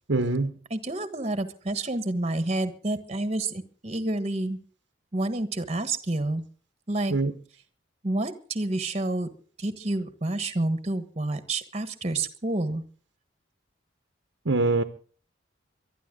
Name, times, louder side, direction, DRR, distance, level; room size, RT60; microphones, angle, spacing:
voice 1, 0.1-0.5 7.1-7.3 14.5-14.8, right 2 dB, 65° right, 1.1 m, -23 dB
voice 2, 0.7-4.6 5.1-6.4 6.9-7.1 8.0-9.3 9.6-12.8, right 2 dB, 35° right, 1.4 m, -29 dB
23.5 x 12.5 x 3.8 m
head